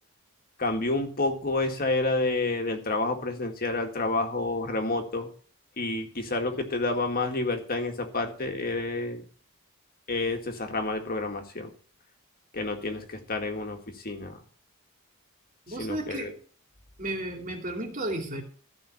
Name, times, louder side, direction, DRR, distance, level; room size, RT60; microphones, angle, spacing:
voice 1, 0.6-5.3 5.8-9.2 10.1-11.7 12.5-13.8 14.0-14.4 15.8-16.3, left 2 dB, 40° left, 1.9 m, -29 dB
voice 2, 15.7-16.4 17.0-18.4, right 1 dB, 35° right, 2.7 m, -33 dB
14.5 x 5.6 x 8.5 m
head